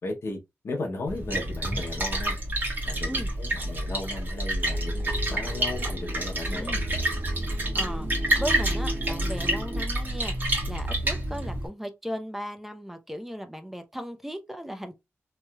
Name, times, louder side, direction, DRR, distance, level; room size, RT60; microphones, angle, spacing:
voice 1, 0.0-0.4 0.6-2.4 2.8-6.8, left 2 dB, 60° left, 0.7 m, -35 dB
Splash splatter, 1.1-11.7, right 1 dB, 40° right, 1.4 m, -28 dB
sound 1, 4.7-9.8, right 1 dB, 75° right, 1.1 m, -38 dB
voice 2, 6.5-6.8 7.7-8.1 8.4-15.0, equal, 5° right, 0.5 m, -37 dB
3.1 x 2.8 x 2.2 m
wide cardioid pair, 130°, 5 cm